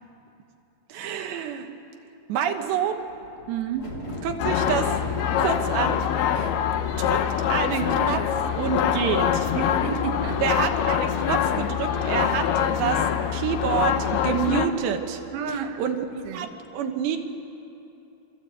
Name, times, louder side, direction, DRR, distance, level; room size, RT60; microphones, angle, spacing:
voice 1, 0.9-1.7 2.3-3.1 4.2-5.0 5.4-6.0 7.1-7.2 7.5-9.5 10.4-16.0 16.3-16.5 16.7-17.2, right 8 dB, 70° right, 5 dB, 3.0 m, -28 dB
sound 1, 1.5-1.6 2.9-11.5 11.8-11.9 12.2-15.4 16.0-16.3, left 1 dB, 25° left, 2.5 m, -42 dB
voice 2, 3.5-3.9 6.4-6.5 9.5-10.4 15.3-15.8 16.3-16.6, right 7 dB, 85° right, 5 dB, 4.4 m, -31 dB
sound 2, 4.4-14.7, left 9 dB, 80° left, 2.2 m, -24 dB
26.5 x 25.5 x 8.5 m, 2.9 s
omnidirectional pair, 6.0 m